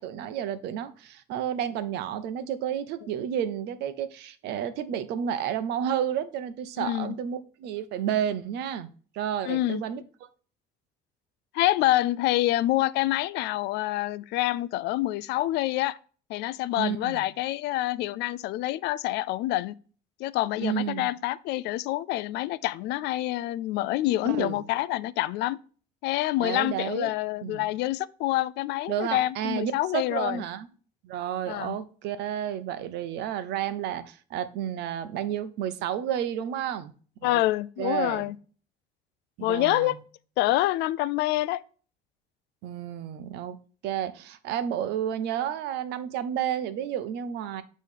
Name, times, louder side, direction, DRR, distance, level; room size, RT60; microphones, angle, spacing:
voice 1, 0.0-8.9 9.1-10.0 16.8-17.3 20.6-21.1 24.2-24.7 26.4-27.1 27.4-27.7 28.9-30.7 31.0-36.9 37.2-37.4 37.8-38.3 39.4-40.0 42.6-43.6 43.8-47.6, right 9 dB, 85° right, 0.8 m, -31 dB
voice 2, 6.8-7.1 9.4-9.8 11.5-16.0 16.3-19.7 20.2-25.6 26.0-30.4 31.5-31.8 37.2-38.4 39.4-40.0 40.4-41.6, left 16 dB, 85° left, 0.4 m, -27 dB
8.4 x 3.1 x 5.3 m
cardioid pair, 110°, 17 cm